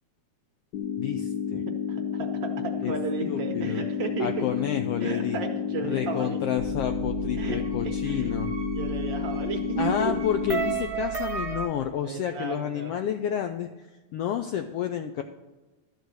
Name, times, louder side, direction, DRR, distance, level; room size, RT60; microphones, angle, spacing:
sound 1, 0.7-10.7, left 8 dB, 60° left, 1.3 m, -31 dB
voice 1, 1.0-1.7 2.8-2.9 3.3-3.8 4.2-5.4 5.8-8.5 9.8-13.9 14.1-15.2, left 9 dB, 90° left, 6 dB, 1.3 m, -30 dB
voice 2, 1.9-4.5 5.0-6.4 7.4-7.6 8.0-8.3 8.7-10.1 12.0-12.9, right 6 dB, 75° right, 3 dB, 1.0 m, -33 dB
sound 2, 6.6-11.7, right 7 dB, 25° right, 0.7 m, -34 dB
12.5 x 4.9 x 8.0 m, 1.2 s
omnidirectional pair, 3.3 m